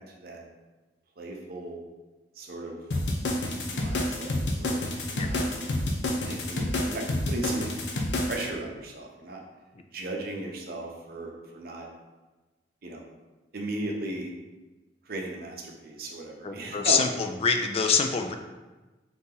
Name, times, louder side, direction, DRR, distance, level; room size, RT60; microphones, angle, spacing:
voice 1, 1.2-1.8 2.4-2.8 3.4-5.5 6.3-7.6 8.2-9.4 9.9-11.9 12.8-13.0 13.5-14.3 15.1-17.0, right 2 dB, 60° right, 1 dB, 0.7 m, -36 dB
sound 1, 2.9-8.5, left 1 dB, 85° left, 0.6 m, -28 dB
voice 2, 16.4-18.3, left 5 dB, 35° left, 6 dB, 0.3 m, -25 dB
4.0 x 2.9 x 3.8 m, 1.2 s
head